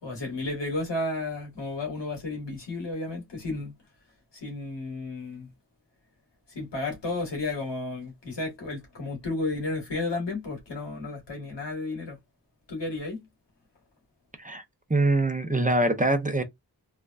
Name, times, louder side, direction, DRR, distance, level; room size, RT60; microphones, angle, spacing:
voice 1, 0.0-3.8 4.3-5.5 6.5-12.2 12.7-13.3, left 2 dB, 85° left, 1.8 m, -32 dB
voice 2, 14.9-16.4, right 2 dB, 20° right, 0.7 m, -24 dB
3.4 x 2.2 x 2.4 m
wide cardioid pair, 65°, 41 cm